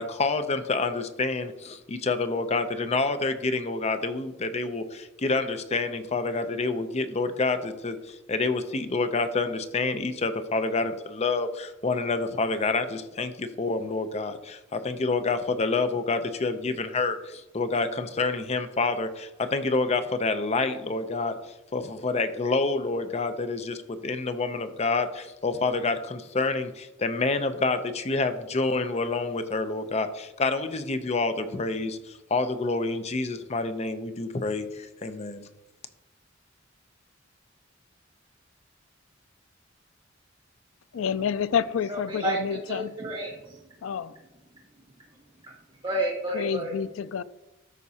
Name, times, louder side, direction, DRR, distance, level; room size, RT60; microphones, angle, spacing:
voice 1, 0.0-21.4 21.7-32.0 32.3-35.5, left 3 dB, 35° left, 9 dB, 0.5 m, -28 dB
voice 2, 40.9-42.9 43.8-44.1 46.3-47.2, left 7 dB, 85° left, 16 dB, 0.4 m, -28 dB
voice 3, 41.9-42.4 42.7-43.6 45.4-45.5 45.8-46.7, right 1 dB, 25° right, -2 dB, 1.1 m, -30 dB
13.0 x 5.2 x 2.8 m, 1.0 s
head